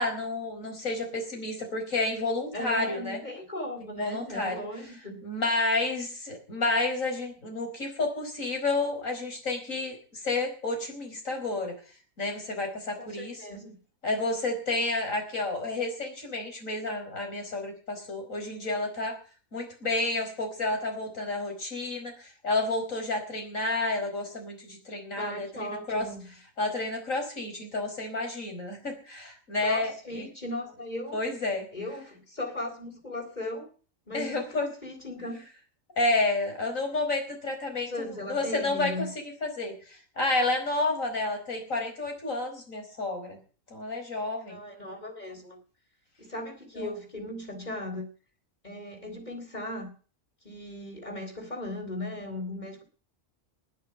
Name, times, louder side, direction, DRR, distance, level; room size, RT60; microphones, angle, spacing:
voice 1, 0.0-3.2 4.0-4.6 5.2-10.0 10.2-11.7 12.2-13.5 14.0-19.2 19.5-26.1 26.6-30.2 31.1-31.7 34.1-34.7 36.0-37.9 38.3-39.1 39.4-43.4 43.7-44.6 46.7-46.9, left 2 dB, 75° left, 3 dB, 5.2 m, -30 dB
voice 2, 2.5-5.2 13.0-13.7 25.2-26.2 29.6-31.2 31.7-33.7 34.1-35.4 37.9-39.1 44.5-45.6 46.2-48.1 48.6-49.9 50.4-52.8, left 1 dB, 30° left, 5 dB, 4.2 m, -37 dB
20.0 x 6.9 x 8.8 m, 0.40 s
omnidirectional pair, 1.4 m